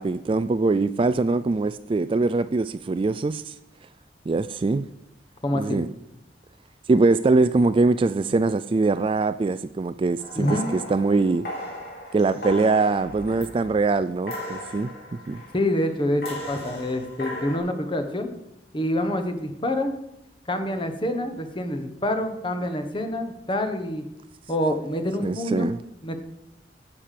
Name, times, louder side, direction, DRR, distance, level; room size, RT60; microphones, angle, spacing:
voice 1, 0.0-3.5 4.3-4.9 5.5-5.9 6.9-11.5 12.1-14.9 15.3-15.4 25.2-25.8, right 3 dB, 30° right, 0.3 m, -22 dB
voice 2, 5.4-5.8 10.3-10.7 15.5-18.3 18.7-19.9 20.5-24.0 24.5-25.7 26.0-26.2, left 1 dB, 30° left, 1.2 m, -26 dB
sound 1, 10.2-13.9 14.2-15.7 16.2-17.6, left 1 dB, 60° left, 4.1 m, -36 dB
10.0 x 7.6 x 6.7 m
head